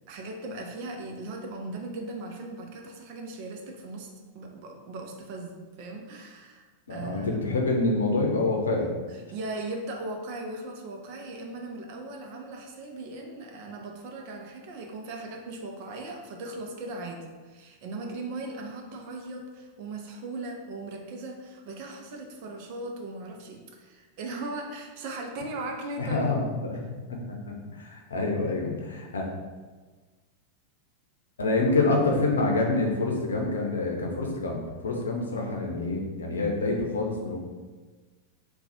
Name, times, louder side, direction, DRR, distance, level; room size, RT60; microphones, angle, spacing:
voice 1, 0.1-4.1 4.3-7.6 9.1-26.3, right 2 dB, 45° right, 2 dB, 0.6 m, -38 dB
voice 2, 6.9-8.9 26.0-29.3 31.4-37.4, left 2 dB, 70° left, 0 dB, 0.7 m, -27 dB
3.9 x 2.3 x 4.2 m, 1.3 s
figure-of-eight pair, 90°, 0 cm